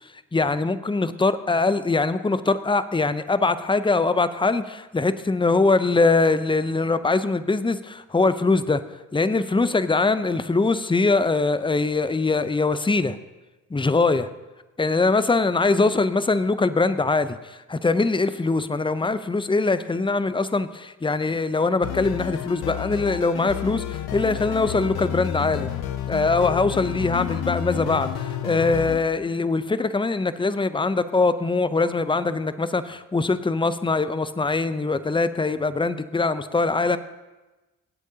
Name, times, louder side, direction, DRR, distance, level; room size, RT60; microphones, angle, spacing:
voice 1, 0.3-8.8 9.1-13.2 13.7-14.3 14.8-25.7 26.1-37.0, left 3 dB, 15° left, 13 dB, 0.7 m, -22 dB
sound 1, 21.8-29.0, left 10 dB, 75° left, 0.8 m, -30 dB
24.0 x 8.1 x 2.8 m, 1.1 s
hypercardioid pair, 40°, 37 cm